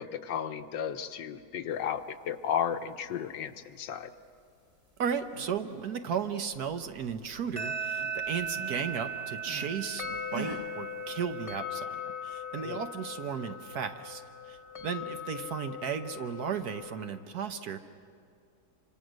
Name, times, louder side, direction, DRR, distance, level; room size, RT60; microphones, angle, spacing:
voice 1, 0.0-4.1 12.5-12.8, left 8 dB, 75° left, 9 dB, 1.5 m, -34 dB
voice 2, 5.0-14.2 14.5-17.8, right 7 dB, 60° right, 8 dB, 1.3 m, -35 dB
sound 1, 5.1-5.6 6.0-7.4 7.7-9.8 10.3-10.7, right 4 dB, 20° right, 1.4 m, -45 dB
sound 2, 7.3-17.1, equal, 20° left, 1.3 m, -38 dB
26.0 x 25.5 x 6.3 m, 2.3 s
omnidirectional pair, 2.0 m